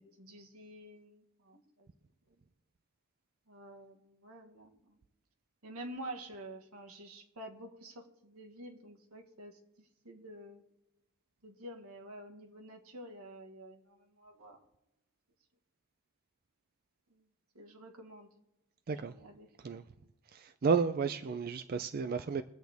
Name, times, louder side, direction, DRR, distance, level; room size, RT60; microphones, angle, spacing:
voice 1, 0.0-1.9 3.5-5.0 5.6-10.6 11.4-14.6 17.1-17.2 17.5-18.3 18.9-19.5, right 1 dB, 80° right, 1.6 m, -49 dB
voice 2, 20.3-22.4, right 5 dB, 45° right, 0.4 m, -32 dB
22.0 x 7.9 x 3.5 m
head